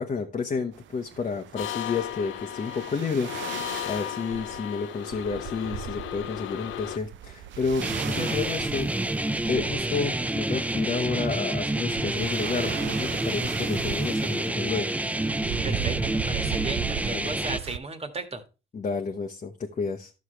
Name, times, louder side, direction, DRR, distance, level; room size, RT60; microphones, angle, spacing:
voice 1, 0.0-8.9 9.5-14.9 17.1-17.3 18.7-20.1, left 5 dB, 40° left, 2 dB, 1.1 m, -31 dB
sound 1, 0.7-17.8, right 12 dB, 75° right, 0.5 m, -38 dB
sound 2, 1.6-7.0, left 12 dB, 80° left, 0.5 m, -35 dB
sound 3, 7.8-17.6, right 1 dB, 5° right, 0.5 m, -28 dB
voice 2, 15.6-18.4, right 3 dB, 30° right, 8 dB, 1.6 m, -35 dB
11.5 x 6.4 x 3.2 m, 0.30 s
cardioid pair, 90°, 20 cm